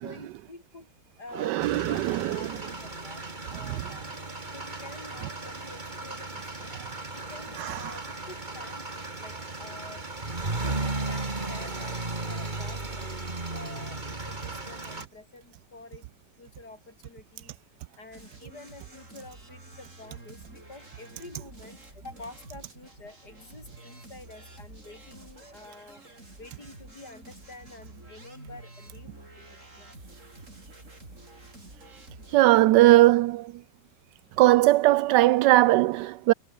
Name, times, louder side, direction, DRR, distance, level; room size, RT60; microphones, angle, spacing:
voice 1, 0.0-0.9 1.2-2.0 2.3-3.2 3.5-4.1 4.5-6.7 7.1-10.0 11.1-12.8 13.5-16.1 16.4-17.5 18.0-26.0 26.4-29.9 31.0-31.2 32.5-32.8, left 2 dB, 70° left, 5.9 m, -48 dB
voice 2, 1.4-2.5 3.7-3.9 7.6-8.0 32.3-33.6 34.4-36.3, right 17 dB, 85° right, 1.2 m, -20 dB
sound 1, 1.6-15.0, right 2 dB, 25° right, 2.7 m, -35 dB
sound 2, 18.1-32.4, right 2 dB, 45° right, 6.5 m, -49 dB
omnidirectional pair, 1.8 m